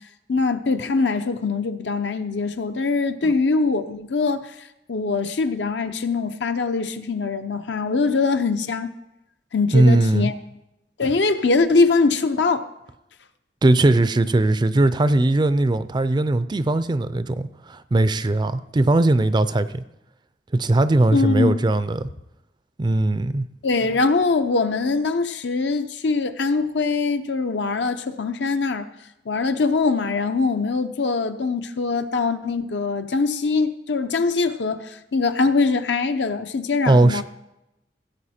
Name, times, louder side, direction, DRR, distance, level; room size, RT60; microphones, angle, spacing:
voice 1, 0.3-4.5 4.9-8.9 9.5-10.3 11.0-12.7 21.1-21.6 23.6-28.9 29.3-37.2, left 4 dB, 70° left, 0.7 m, -22 dB
voice 2, 9.7-10.3 13.6-19.8 20.5-22.1 22.8-23.5 36.9-37.2, right 2 dB, 25° right, 0.4 m, -19 dB
16.0 x 7.5 x 4.3 m
head